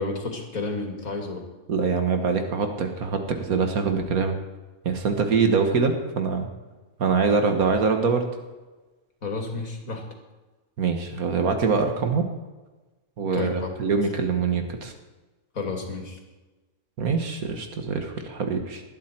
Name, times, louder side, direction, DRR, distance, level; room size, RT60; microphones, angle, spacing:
voice 1, 0.0-1.5 9.2-10.1 13.3-13.7 15.5-16.2, left 3 dB, 70° left, 3 dB, 2.8 m, -31 dB
voice 2, 1.7-4.4 4.9-6.5 7.0-8.3 10.8-12.3 13.2-14.9 17.0-18.8, right 5 dB, 80° right, 5 dB, 1.9 m, -24 dB
19.5 x 12.0 x 4.5 m, 1.2 s
omnidirectional pair, 1.5 m